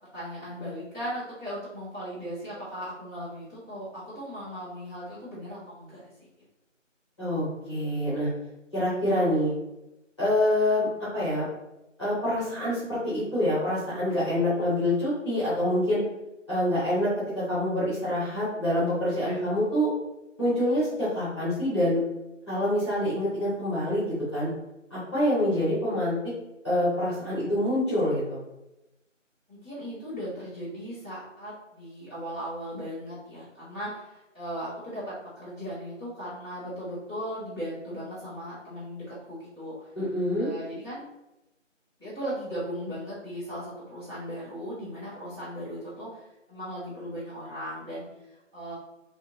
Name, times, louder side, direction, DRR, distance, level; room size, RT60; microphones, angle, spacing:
voice 1, 0.1-6.1 19.2-19.4 29.5-39.9 40.4-41.0 42.0-48.7, equal, 20° right, -15 dB, 1.4 m, -37 dB
voice 2, 7.2-8.3 8.7-9.5 10.2-10.9 11.1-11.4 12.0-16.0 16.5-17.1 17.3-19.9 20.4-22.0 22.5-24.1 24.3-24.5 24.9-26.2 26.6-28.4 40.0-40.5, left 1 dB, 20° left, -11 dB, 1.1 m, -26 dB
3.3 x 2.6 x 2.9 m, 0.95 s
figure-of-eight pair, 170°, 38 cm